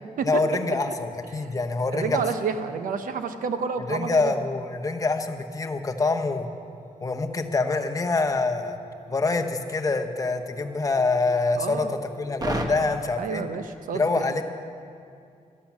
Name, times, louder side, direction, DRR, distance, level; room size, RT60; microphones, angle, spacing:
voice 1, 0.2-2.2 3.8-6.5 7.0-8.8 9.1-13.5 13.9-14.4, left 3 dB, 25° left, 5 dB, 0.9 m, -25 dB
voice 2, 1.9-4.3 11.6-11.9 13.2-14.0, right 6 dB, 85° right, 9 dB, 0.9 m, -29 dB
sound 1, 6.0-12.6, right 1 dB, 30° right, 1.2 m, -40 dB
13.0 x 11.5 x 7.4 m, 2.4 s
wide cardioid pair, 125°, 14 cm